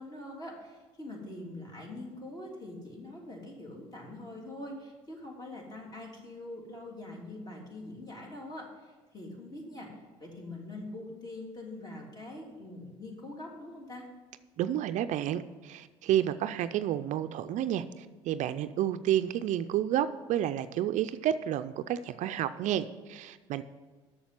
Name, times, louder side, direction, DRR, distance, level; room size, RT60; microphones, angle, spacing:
voice 1, 0.0-14.1, left 1 dB, 30° left, -1 dB, 3.1 m, -44 dB
voice 2, 14.6-23.6, right 11 dB, 60° right, 12 dB, 0.5 m, -30 dB
7.1 x 6.8 x 7.6 m, 1.3 s
hypercardioid pair, 70°, 14 cm